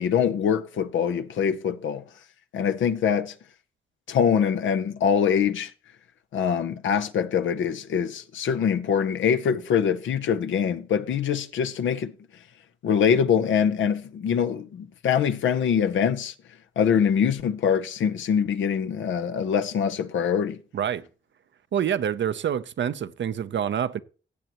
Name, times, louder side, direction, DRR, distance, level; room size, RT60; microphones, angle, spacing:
voice 1, 0.0-2.0 2.5-3.3 4.1-5.7 6.3-12.1 12.8-16.3 16.8-20.6, left 7 dB, 85° left, 0.7 m, -24 dB
voice 2, 20.7-21.1 21.7-24.0, right 9 dB, 70° right, 0.7 m, -27 dB
15.0 x 7.8 x 3.0 m
supercardioid pair, 45°, 19 cm